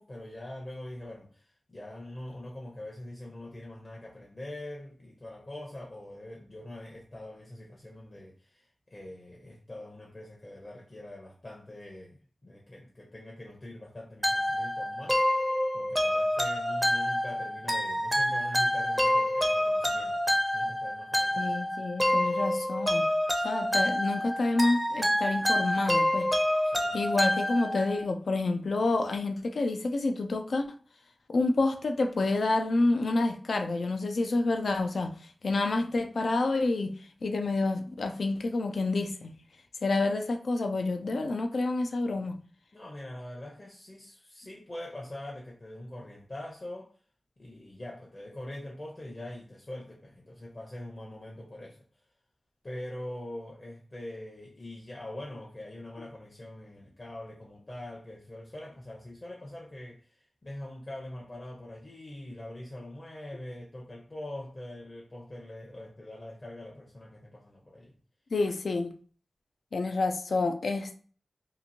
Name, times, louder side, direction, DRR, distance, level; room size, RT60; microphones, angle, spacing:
voice 1, 0.0-15.4 15.7-21.5 26.7-27.1 42.7-46.9 47.4-51.8 52.6-67.9, left 1 dB, 45° left, 0.7 m, -43 dB
sound 1, 14.2-28.0, equal, 5° right, 0.5 m, -27 dB
voice 2, 21.4-23.1 23.4-26.3 26.9-30.7 31.3-35.2 35.4-36.9 37.2-39.3 39.8-42.4 68.3-69.0 69.7-71.0, left 2 dB, 75° left, 0.4 m, -28 dB
2.9 x 2.5 x 2.6 m
cardioid pair, 45°, 0 cm